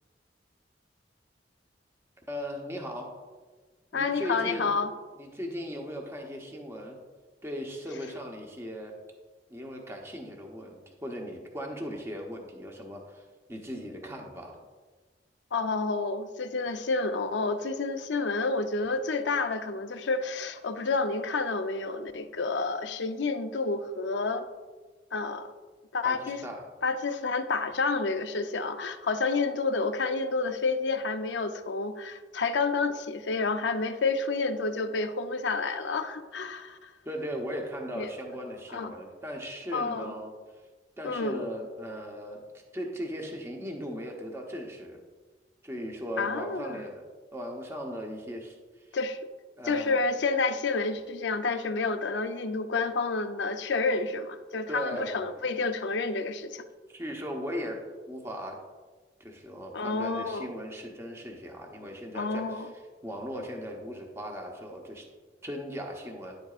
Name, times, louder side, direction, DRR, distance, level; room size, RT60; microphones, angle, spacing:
voice 1, 2.3-3.2 3.9-4.7 5.2-7.0 7.4-8.9 9.5-13.2 13.5-14.6 26.0-26.7 37.0-40.3 41.0-42.4 42.7-45.0 45.6-47.1 47.3-48.6 49.6-50.0 54.7-55.4 56.9-58.6 59.2-62.7 63.0-65.1 65.4-66.4, equal, 15° right, 1 dB, 0.9 m, -38 dB
voice 2, 3.9-4.9 15.5-24.5 25.1-25.5 25.9-26.4 26.8-36.9 38.0-38.1 38.7-38.9 39.7-40.1 41.0-41.5 46.2-46.8 48.9-49.2 49.7-56.6 59.7-60.5 62.1-62.7, left 3 dB, 80° left, 8 dB, 0.6 m, -29 dB
10.0 x 7.9 x 2.4 m, 1.3 s
head